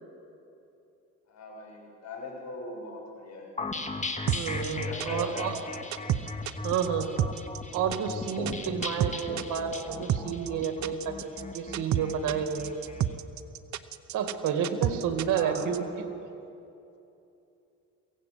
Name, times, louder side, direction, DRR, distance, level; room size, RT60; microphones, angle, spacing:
voice 1, 1.3-3.6 4.6-5.6 15.3-15.8, left 2 dB, 65° left, -1 dB, 7.2 m, -41 dB
sound 1, 3.6-13.0, left 3 dB, 25° left, 1.9 m, -37 dB
voice 2, 4.2-5.6 6.6-7.1 7.7-12.8 14.1-15.9 16.2-16.3, right 7 dB, 85° right, 6 dB, 2.3 m, -30 dB
sound 2, 4.3-15.8, right 11 dB, 70° right, 0.8 m, -30 dB
23.0 x 16.5 x 8.6 m, 2.8 s
cardioid pair, 90°, 30 cm